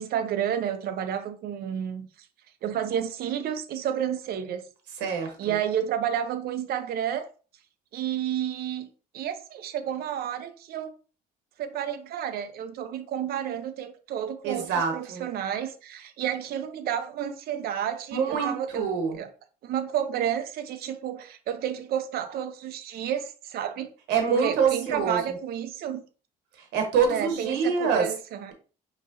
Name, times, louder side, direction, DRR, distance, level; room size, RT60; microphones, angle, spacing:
voice 1, 0.0-2.1 2.6-4.7 5.4-7.3 7.9-10.9 11.6-18.9 19.1-19.3 19.6-23.9 24.3-26.0 27.1-28.5, right 9 dB, 65° right, 0.6 m, -31 dB
voice 2, 5.0-5.6 14.4-15.2 18.1-19.2 24.1-25.2 26.7-28.1, right 6 dB, 85° right, 1.1 m, -25 dB
5.1 x 3.0 x 2.6 m
cardioid pair, 110°, 17 cm